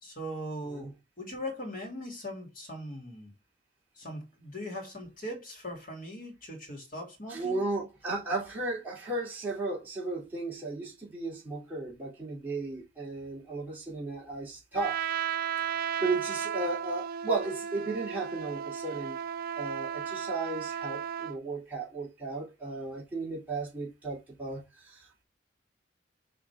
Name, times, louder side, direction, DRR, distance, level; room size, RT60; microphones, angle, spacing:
voice 1, 0.0-3.3 4.0-7.6, equal, 50° left, 3.1 m, -40 dB
voice 2, 7.3-15.0 16.0-19.2 19.6-25.2, right 3 dB, 10° right, 3.1 m, -35 dB
Trumpet, 14.7-21.4, right 8 dB, 55° right, 0.4 m, -34 dB
6.1 x 6.0 x 3.6 m
head